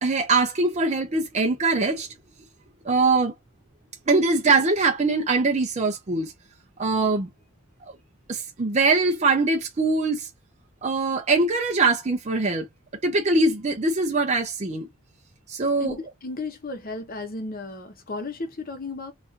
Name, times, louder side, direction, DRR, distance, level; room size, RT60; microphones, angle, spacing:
voice 1, 0.0-2.1 2.9-3.3 4.1-6.3 6.8-7.3 7.8-7.9 8.3-10.3 10.8-12.7 13.0-14.9 15.5-16.0, right 3 dB, 30° right, 0.5 m, -22 dB
voice 2, 15.8-19.1, left 3 dB, 45° left, 0.8 m, -34 dB
4.0 x 2.4 x 2.5 m
head